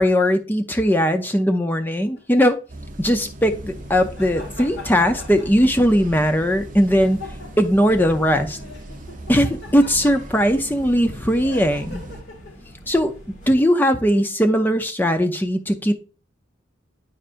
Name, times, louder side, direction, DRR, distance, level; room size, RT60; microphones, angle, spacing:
voice 1, 0.0-2.6 3.0-7.2 7.6-8.6 9.3-12.0 12.9-15.9, equal, 10° left, 6 dB, 0.5 m, -19 dB
sound 1, 2.2-2.5 3.9-6.1 7.0-7.8 8.3-10.6 11.4-12.7 13.5-13.8, left 3 dB, 55° left, 1.3 m, -41 dB
sound 2, 2.7-12.2, right 1 dB, 40° right, 0.7 m, -39 dB
sound 3, 3.5-13.5, equal, 40° left, 1.7 m, -44 dB
8.6 x 5.5 x 2.6 m, 0.35 s
head